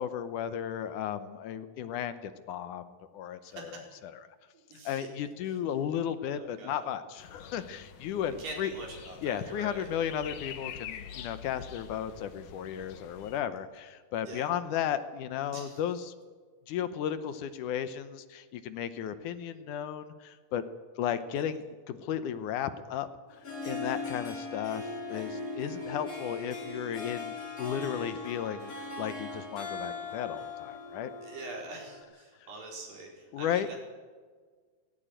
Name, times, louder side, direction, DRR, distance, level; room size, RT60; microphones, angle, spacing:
voice 1, 0.0-4.1 4.9-8.7 9.2-16.1 16.7-20.6 21.0-23.1 23.6-27.3 27.6-31.1 33.3-33.7, left 9 dB, 70° left, 11 dB, 2.2 m, -34 dB
voice 2, 3.4-3.9 4.5-5.1 5.5-5.6 6.2-6.8 8.4-9.9 14.2-14.5 15.5-15.8 21.4-21.5 31.2-33.8, right 2 dB, 80° right, 0 dB, 6.2 m, -44 dB
sound 1, 7.2-13.4, left 9 dB, 90° left, 3.0 m, -46 dB
Harp, 23.3-32.0, left 3 dB, 25° left, 3.6 m, -39 dB
18.5 x 16.5 x 9.0 m, 1.5 s
omnidirectional pair, 3.9 m